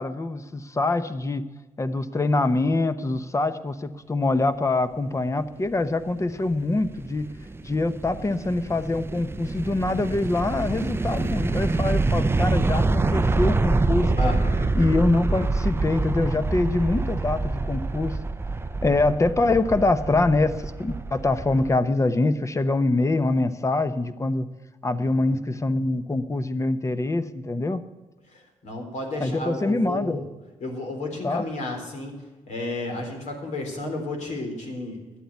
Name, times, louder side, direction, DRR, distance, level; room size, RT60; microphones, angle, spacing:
voice 1, 0.0-1.4 1.8-7.4 7.6-14.4 14.7-18.2 18.8-24.5 24.8-27.8 29.2-30.3 31.2-31.4, left 2 dB, 25° left, 12 dB, 0.9 m, -24 dB
sound 1, 6.2-21.8, right 3 dB, 20° right, 0.5 m, -26 dB
voice 2, 14.2-14.7 25.2-25.4 28.3-30.2 30.6-32.1 32.5-35.2, left 2 dB, 65° left, 2 dB, 3.6 m, -32 dB
11.0 x 8.5 x 8.4 m, 1.2 s
supercardioid pair, 70°, 13 cm